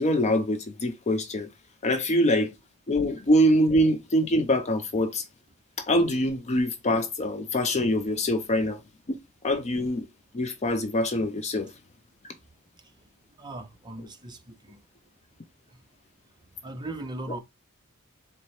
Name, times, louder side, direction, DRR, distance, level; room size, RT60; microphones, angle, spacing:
voice 1, 0.0-1.5 1.8-2.5 2.9-5.2 5.8-8.8 9.1-9.2 9.4-10.1 10.3-11.7 12.2-12.3, equal, 30° left, 0.5 m, -24 dB
voice 2, 13.4-14.8 15.7-15.8 16.5-17.4, right 2 dB, 20° right, 0.7 m, -39 dB
4.7 x 2.2 x 4.1 m
head